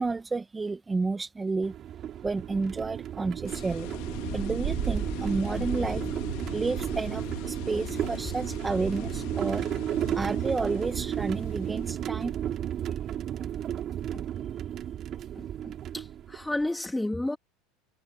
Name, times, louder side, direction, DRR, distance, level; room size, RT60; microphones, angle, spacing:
voice 1, 0.0-1.7 2.2-3.9 4.3-6.1 6.5-9.7 10.1-12.4, right 3 dB, 15° right, 1.4 m, -31 dB
sound 1, 1.6-16.6, right 10 dB, 40° right, 3.7 m, -33 dB
sound 2, 3.5-12.1, left 22 dB, 70° left, 3.3 m, -41 dB
voice 2, 15.4-17.4, left 1 dB, 5° left, 3.0 m, -32 dB
supercardioid pair, 120°, 0 cm